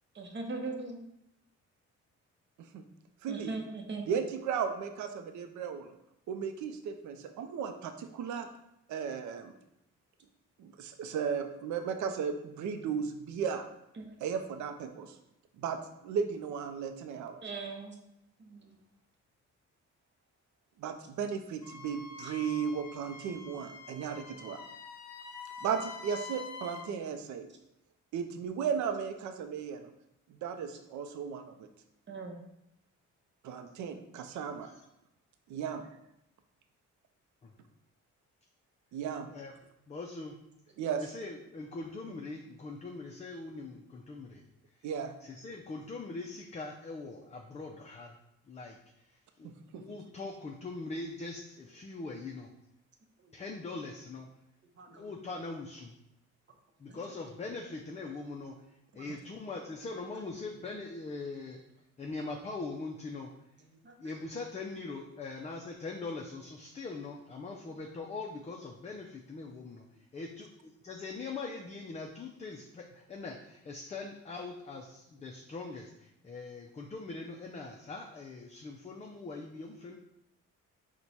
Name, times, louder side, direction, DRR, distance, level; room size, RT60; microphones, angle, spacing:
voice 1, 0.2-1.0 3.3-4.1 14.0-14.1 17.4-18.0 18.4-18.7 22.2-22.3 32.1-32.4 54.8-55.1 56.9-57.0 58.9-59.0 63.8-63.9 67.6-67.7, right 3 dB, 40° right, 3 dB, 0.8 m, -40 dB
voice 2, 4.1-5.9 6.3-8.5 8.9-9.5 10.6-13.6 14.2-15.2 15.6-17.4 20.8-24.6 25.6-27.5 28.1-29.9 30.3-31.7 33.4-34.7 35.5-35.9 38.9-39.3 40.8-41.0 44.8-45.1 49.4-49.8 59.1-59.2, right 7 dB, 70° right, 7 dB, 0.5 m, -35 dB
Wind instrument woodwind instrument, 21.6-26.9, left 5 dB, 65° left, 0.7 m, -46 dB
voice 3, 39.9-40.3 41.0-44.4 45.2-48.1 48.5-48.8 49.1-52.5 53.3-54.3 54.9-55.9 56.8-58.6 58.9-61.6 62.0-63.3 64.0-69.8 70.1-70.5 70.8-80.0, left 3 dB, 25° left, 1 dB, 0.4 m, -42 dB
4.5 x 2.2 x 4.0 m, 0.82 s
cardioid pair, 90°, 30 cm